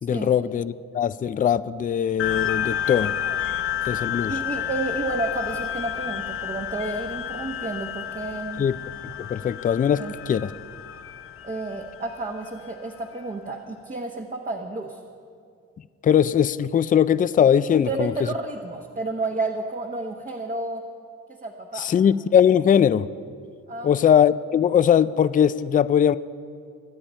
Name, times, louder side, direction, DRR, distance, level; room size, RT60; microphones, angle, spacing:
voice 1, 0.0-3.1 3.9-4.3 8.6-8.8 9.0-10.5 16.0-18.1 21.8-23.1 23.8-26.2, left 8 dB, 30° left, 0.4 m, -20 dB
sound 1, 2.2-13.1, left 10 dB, 45° left, 0.8 m, -31 dB
voice 2, 4.1-8.6 9.9-10.1 11.4-15.0 17.7-20.8 21.4-21.9 23.7-23.9, right 3 dB, 25° right, 1.1 m, -31 dB
24.5 x 8.8 x 4.4 m
cardioid pair, 90°, 30 cm